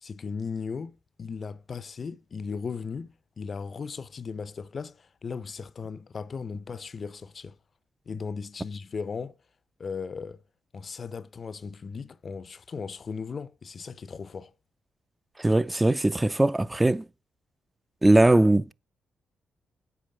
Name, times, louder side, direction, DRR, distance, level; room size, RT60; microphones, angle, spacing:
voice 1, 0.0-7.5 8.1-9.3 9.8-10.4 10.7-14.5, left 5 dB, 50° left, 0.6 m, -37 dB
voice 2, 15.4-17.0 18.0-18.7, right 2 dB, 20° right, 0.5 m, -20 dB
8.4 x 5.0 x 6.5 m
hypercardioid pair, 45°, 0 cm